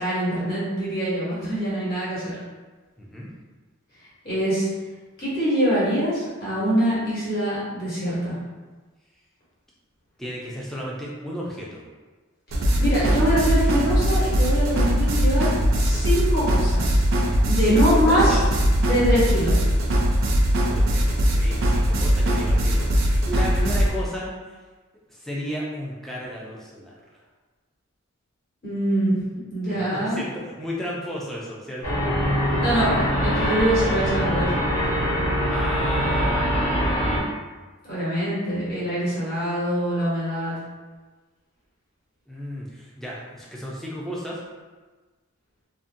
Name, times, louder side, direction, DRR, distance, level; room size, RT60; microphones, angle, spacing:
voice 1, 0.0-2.4 4.2-4.7 5.2-8.3 12.8-18.4 18.8-19.6 28.6-29.2 29.5-30.2 32.6-34.5 37.9-40.5, equal, 45° left, -10 dB, 1.1 m, -24 dB
voice 2, 3.0-3.3 10.2-11.9 17.1-18.4 20.7-24.6 25.1-27.0 29.7-32.0 35.5-36.9 42.3-44.4, equal, ahead, -5 dB, 0.3 m, -34 dB
sound 1, 12.5-23.9, equal, 70° right, 0.4 m, -20 dB
sound 2, 31.8-37.2, equal, 75° left, 1.3 m, -23 dB
2.6 x 2.1 x 2.6 m, 1.3 s
head